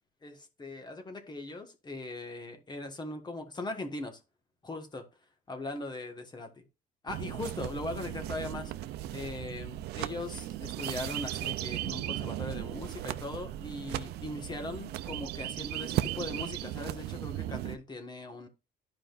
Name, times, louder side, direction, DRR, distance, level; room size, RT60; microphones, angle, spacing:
voice 1, 0.2-4.2 4.6-5.0 5.5-6.6 7.0-8.7 9.1-18.5, left 2 dB, 25° left, 1.5 m, -40 dB
sound 1, 7.1-17.8, right 14 dB, 75° right, 0.5 m, -36 dB
11.5 x 5.0 x 2.5 m
cardioid pair, 110°, 17 cm